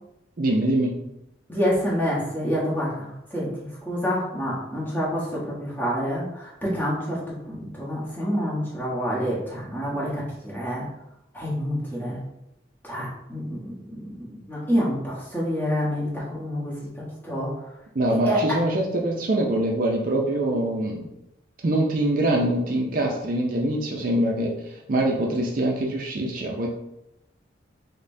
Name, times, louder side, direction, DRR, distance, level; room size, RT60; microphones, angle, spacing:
voice 1, 0.4-0.9 18.0-21.1 21.6-26.7, right 1 dB, 45° right, 0 dB, 0.4 m, -24 dB
voice 2, 1.5-7.2 7.5-10.8 11.3-12.2 12.8-17.5 18.1-18.6, equal, 10° left, -7 dB, 1.0 m, -27 dB
5.1 x 2.1 x 2.6 m, 0.86 s
head